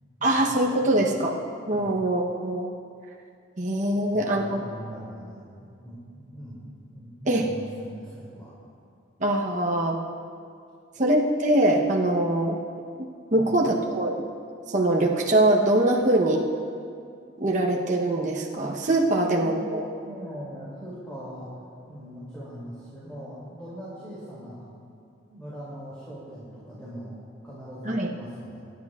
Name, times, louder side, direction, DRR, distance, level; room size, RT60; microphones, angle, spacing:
voice 1, 0.2-1.4 1.7-2.7 3.6-4.6 7.3-7.5 9.2-10.0 11.0-12.6 13.3-14.3 14.7-16.5 17.4-19.9 27.9-28.1, right 1 dB, 40° right, -1 dB, 0.9 m, -23 dB
voice 2, 4.1-8.5 13.3-13.6 19.1-19.7 20.0-21.5 21.9-24.7 25.3-27.1 27.4-28.6, equal, 5° left, -10 dB, 2.8 m, -41 dB
25.0 x 10.5 x 2.4 m, 2.4 s
head